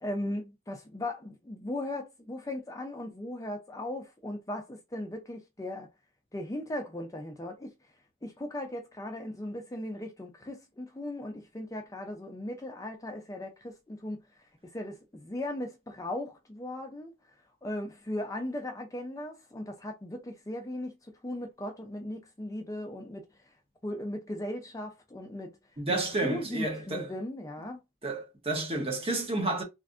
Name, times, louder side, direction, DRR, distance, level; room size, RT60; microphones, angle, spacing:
voice 1, 0.0-5.9 6.3-7.7 8.2-14.2 14.7-17.1 17.6-20.9 21.2-23.2 23.8-25.6 25.9-26.0 26.2-27.8, left 1 dB, 15° left, 0.5 m, -37 dB
voice 2, 25.8-27.1 28.0-29.6, right 2 dB, 30° right, 0.9 m, -31 dB
3.3 x 2.5 x 2.4 m
head